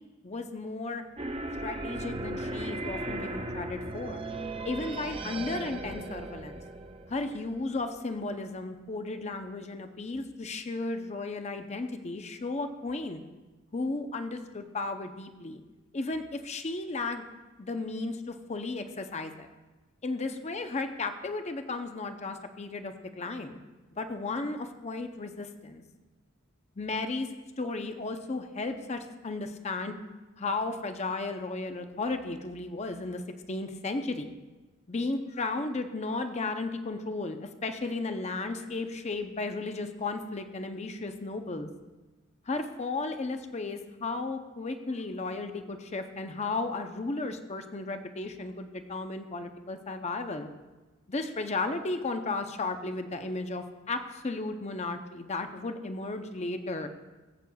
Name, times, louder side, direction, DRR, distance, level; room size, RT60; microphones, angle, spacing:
voice 1, 0.2-1.0 1.6-4.3 4.6-6.6 7.1-13.2 13.7-15.6 15.9-17.2 17.6-19.5 20.0-23.6 23.9-25.8 26.8-27.3 27.6-29.9 30.4-33.2 33.5-34.3 34.9-41.7 42.5-50.5 51.1-56.9, left 3 dB, 35° left, 7 dB, 0.6 m, -34 dB
sound 1, 1.2-8.0, right 2 dB, 25° right, 0.5 m, -37 dB
21.0 x 7.9 x 2.3 m, 1.2 s
head